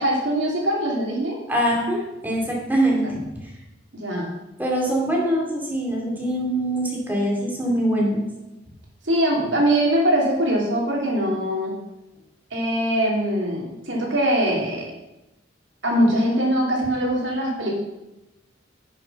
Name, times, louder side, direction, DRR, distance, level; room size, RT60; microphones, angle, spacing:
voice 1, 0.0-1.4 3.9-4.3 9.0-11.7 12.5-14.9 15.8-17.7, right 1 dB, 70° right, -2 dB, 3.0 m, -22 dB
voice 2, 1.5-3.2 4.6-8.3, right 1 dB, 10° right, -2 dB, 2.5 m, -23 dB
9.9 x 6.3 x 5.7 m, 0.97 s
head